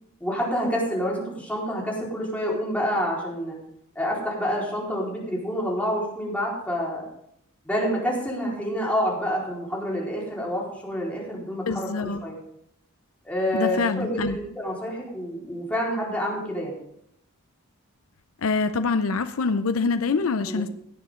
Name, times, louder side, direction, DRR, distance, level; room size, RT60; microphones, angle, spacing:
voice 1, 0.2-3.6 4.0-7.1 7.6-12.4 13.2-16.8 20.5-20.6, equal, 5° left, -4 dB, 4.2 m, -28 dB
voice 2, 11.7-12.2 13.5-14.4 18.4-20.7, left 4 dB, 75° left, 10 dB, 0.6 m, -25 dB
17.5 x 9.9 x 3.7 m, 0.73 s
head